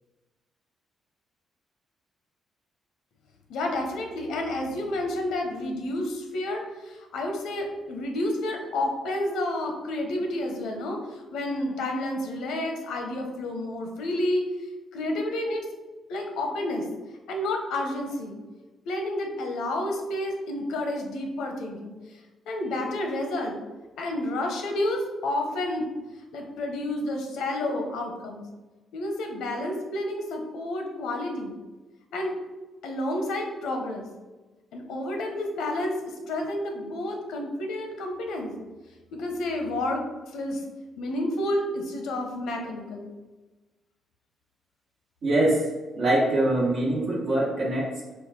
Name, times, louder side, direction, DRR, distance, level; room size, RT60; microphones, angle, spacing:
voice 1, 3.5-14.4 14.9-15.7 16.1-16.8 17.3-18.4 18.8-21.9 22.5-23.6 24.0-25.9 26.3-28.4 28.9-31.5 32.1-32.3 32.8-34.1 34.7-38.5 39.1-40.6 41.0-43.1, left 1 dB, 85° left, 3 dB, 0.8 m, -30 dB
voice 2, 45.2-45.7 46.0-48.1, right 1 dB, 60° right, -6 dB, 1.0 m, -23 dB
4.6 x 2.3 x 4.7 m, 1.2 s
cardioid pair, 90°, 0 cm